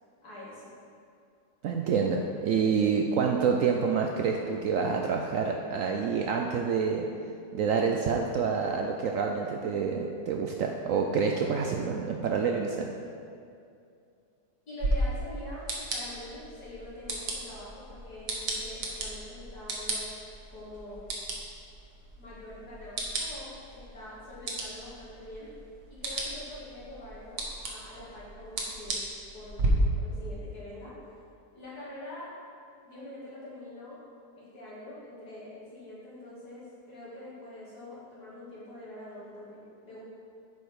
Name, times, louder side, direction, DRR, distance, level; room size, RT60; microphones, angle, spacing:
voice 1, 0.2-0.7 14.7-20.1 20.5-21.1 22.1-25.5 25.9-29.0 29.3-31.0 31.5-32.3 32.8-34.0 34.4-40.1, left 1 dB, 65° left, -8 dB, 2.7 m, -45 dB
voice 2, 1.6-7.1 7.5-12.9, right 5 dB, 70° right, 2 dB, 0.8 m, -27 dB
sound 1, 14.8-29.7, right 2 dB, 55° right, 1.4 m, -36 dB
7.9 x 5.2 x 4.7 m, 2.5 s
omnidirectional pair, 1.8 m